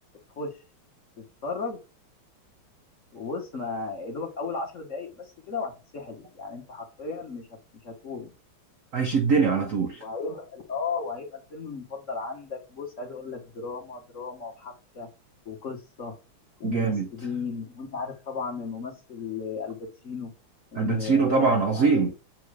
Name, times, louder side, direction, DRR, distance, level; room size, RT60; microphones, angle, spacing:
voice 1, 1.2-1.8 3.1-7.5 7.8-8.3 10.0-15.1 15.4-16.1 16.6-19.8 20.0-20.3 20.7-22.1, left 4 dB, 40° left, 1.3 m, -35 dB
voice 2, 8.9-10.0 16.6-17.1 20.8-22.1, right 5 dB, 85° right, 0.7 m, -23 dB
7.4 x 2.8 x 4.7 m
omnidirectional pair, 2.4 m